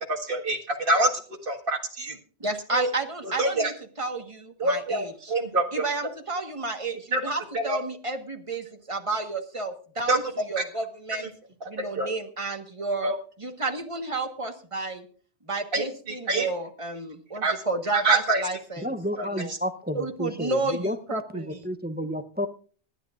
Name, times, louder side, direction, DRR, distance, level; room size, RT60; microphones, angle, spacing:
voice 1, 0.1-1.1 1.4-2.2 2.7-2.9 3.4-3.7 4.6-5.8 7.1-7.2 7.5-7.8 10.1-10.2 10.6-10.7 11.8-12.1 13.0-13.2 15.7-15.9 16.3-16.5 17.4-17.6 17.9-18.4 19.2-19.6, right 2 dB, 55° right, 1 dB, 1.9 m, -25 dB
voice 2, 2.4-5.3 5.7-10.2 10.5-11.3 11.7-13.1 13.4-15.1 15.4-19.0 19.2-19.5 19.9-21.7, right 3 dB, 30° right, 5 dB, 1.5 m, -31 dB
voice 3, 18.8-20.0 20.8-20.9 21.7-22.5, equal, 10° right, 9 dB, 0.6 m, -30 dB
26.0 x 10.5 x 2.5 m, 0.43 s
omnidirectional pair, 1.1 m